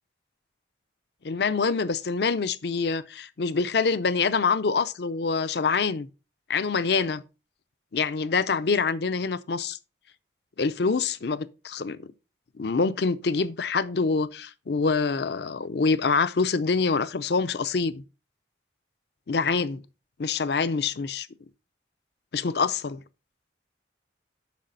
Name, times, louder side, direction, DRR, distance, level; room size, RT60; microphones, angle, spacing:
voice 1, 1.2-6.1 6.5-7.2 7.9-9.8 10.6-12.1 12.6-18.0 19.3-19.8 20.2-21.3 22.3-23.0, left 4 dB, 60° left, 0.5 m, -25 dB
8.5 x 5.8 x 3.8 m
head